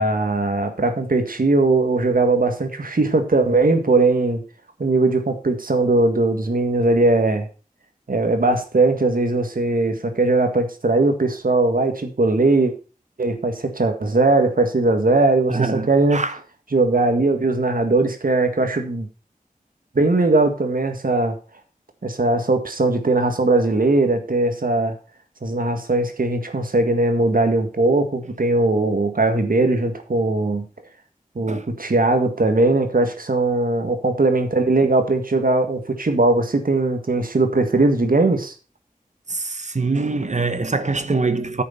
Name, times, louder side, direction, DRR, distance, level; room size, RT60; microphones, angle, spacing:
voice 1, 0.0-4.4 4.8-7.5 8.1-12.7 13.2-16.2 16.7-19.1 20.0-21.4 22.0-25.0 25.4-30.7 31.4-38.5, right 2 dB, 70° right, 1.8 m, -19 dB
voice 2, 15.5-16.4 31.5-31.6 39.3-41.6, right 3 dB, 55° right, 1.1 m, -24 dB
9.6 x 6.6 x 5.5 m
wide cardioid pair, 60°, 15 cm